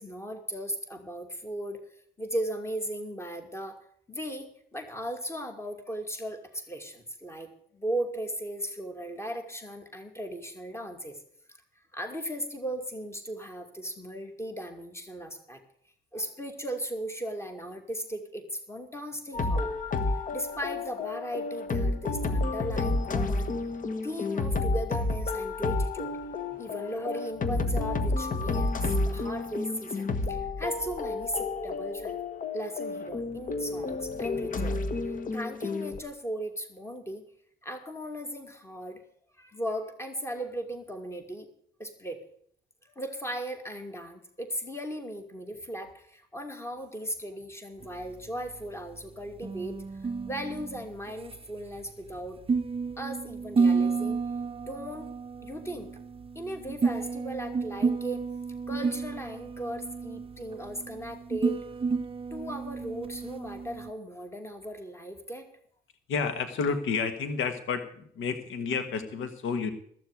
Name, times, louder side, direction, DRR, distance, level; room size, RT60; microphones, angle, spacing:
voice 1, 0.0-1.8 2.2-3.8 4.1-11.2 11.9-15.6 16.1-19.7 20.3-23.5 24.0-26.2 26.5-32.2 32.5-37.2 37.6-39.0 39.4-41.5 41.8-42.2 42.8-49.8 50.3-52.4 53.0-54.2 54.7-55.1 55.4-55.9 56.3-58.2 58.7-61.6 62.3-65.5, equal, 15° left, 6 dB, 2.5 m, -37 dB
sound 1, 19.3-36.0, left 3 dB, 40° left, 1.4 m, -30 dB
sound 2, 47.8-63.9, right 4 dB, 30° right, 0.6 m, -31 dB
voice 2, 66.1-69.7, left 5 dB, 80° left, 9 dB, 1.5 m, -30 dB
14.0 x 7.1 x 9.3 m, 0.64 s
cardioid pair, 90°, 20 cm